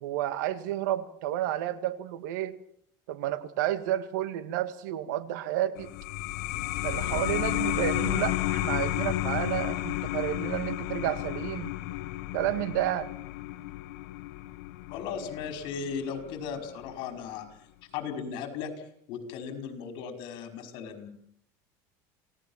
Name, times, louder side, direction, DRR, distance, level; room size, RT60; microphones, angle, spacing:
voice 1, 0.0-2.6 3.1-5.9 6.8-11.7 12.3-13.1, right 13 dB, 90° right, 12 dB, 1.9 m, -31 dB
sound 1, 5.8-16.9, left 16 dB, 80° left, 1.3 m, -32 dB
voice 2, 14.9-17.5 17.9-21.1, left 6 dB, 65° left, 5 dB, 5.4 m, -37 dB
28.0 x 18.0 x 7.4 m, 0.68 s
supercardioid pair, 130°, 9 cm